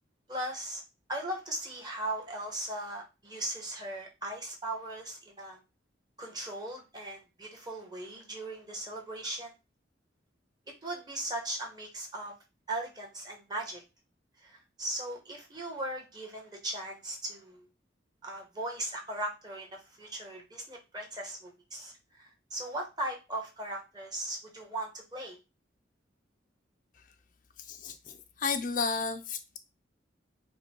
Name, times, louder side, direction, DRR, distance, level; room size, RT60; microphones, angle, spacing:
voice 1, 0.3-0.8 1.1-5.6 6.2-9.5 10.8-12.3 12.7-13.8 14.4-17.7 18.2-25.4, right 1 dB, 20° right, 1.2 m, -38 dB
voice 2, 28.4-29.6, left 5 dB, 45° left, 0.4 m, -32 dB
5.2 x 2.3 x 4.4 m
head